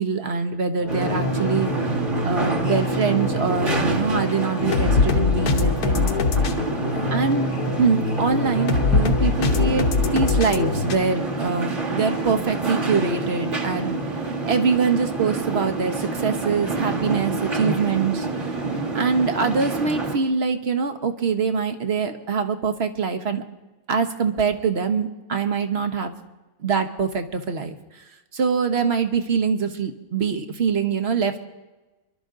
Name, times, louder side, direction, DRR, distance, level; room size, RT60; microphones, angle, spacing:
voice 1, 0.0-1.7 2.2-6.1 7.1-7.5 7.8-14.0 14.5-18.3 18.9-23.4 23.9-26.1 26.6-27.8 28.3-31.4, right 5 dB, 45° right, 7 dB, 1.3 m, -24 dB
sound 1, 0.8-11.0, left 4 dB, 85° left, 1.5 m, -24 dB
sound 2, 0.9-20.2, right 3 dB, 30° right, 2.0 m, -27 dB
26.0 x 12.0 x 3.8 m, 1.1 s
omnidirectional pair, 1.6 m